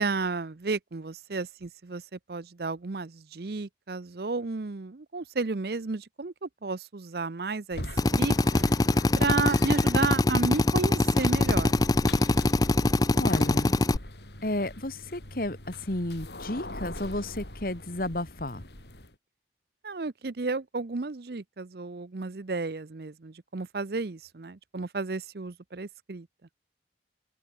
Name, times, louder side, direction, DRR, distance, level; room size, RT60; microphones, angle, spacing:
voice 1, 0.0-7.8 8.1-8.7 9.2-11.8 19.8-26.3, right 3 dB, 60° right, 0.7 m, -32 dB
sound 1, 7.7-19.1, left 1 dB, 70° left, 6.0 m, -41 dB
Drill, 8.0-14.0, left 2 dB, 20° left, 0.4 m, -23 dB
voice 2, 13.1-13.7 14.4-18.6, left 1 dB, 50° left, 2.2 m, -32 dB
open air
head